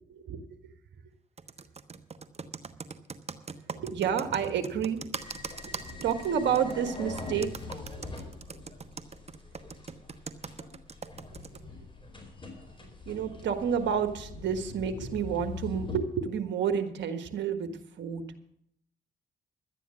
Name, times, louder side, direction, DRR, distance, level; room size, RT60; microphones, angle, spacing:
Computer keyboard, 1.4-11.6, right 5 dB, 30° right, 1.0 m, -41 dB
voice 1, 3.8-5.1 5.6-7.5 8.0-8.1 13.1-17.7 18.0-18.2, right 7 dB, 65° right, 7 dB, 1.5 m, -30 dB
sound 1, 5.1-16.0, left 3 dB, 25° left, 4.5 m, -43 dB
12.0 x 9.2 x 7.4 m, 0.70 s
hypercardioid pair, 45°, 20 cm